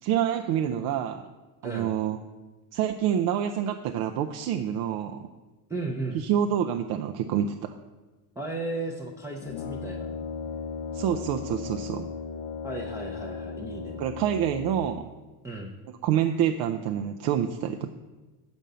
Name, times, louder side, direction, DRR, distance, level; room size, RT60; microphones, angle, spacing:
voice 1, 0.0-1.2 1.6-2.2 2.7-5.3 6.1-7.8 10.9-12.1 14.0-15.1 16.0-17.9, right 9 dB, 55° right, 5 dB, 0.5 m, -27 dB
voice 2, 1.6-2.0 5.7-6.3 8.4-10.2 12.6-14.0 15.4-15.8, right 2 dB, 5° right, -2 dB, 0.6 m, -35 dB
Brass instrument, 9.4-15.2, left 5 dB, 60° left, 0.8 m, -36 dB
7.5 x 5.3 x 6.7 m, 1.2 s
cardioid pair, 145°, 43 cm